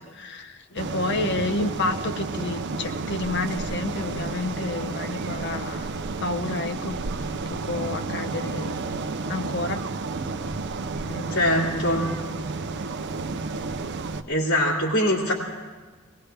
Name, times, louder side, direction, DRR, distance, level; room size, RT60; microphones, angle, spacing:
voice 1, 0.0-7.0 7.5-9.8 11.1-12.0, left 2 dB, 55° left, 6 dB, 0.8 m, -30 dB
sound 1, 0.8-14.2, right 3 dB, 55° right, 0.6 m, -31 dB
voice 2, 11.3-12.1 14.3-15.3, left 1 dB, 85° left, -5 dB, 2.4 m, -22 dB
20.5 x 18.5 x 3.4 m, 1.3 s
head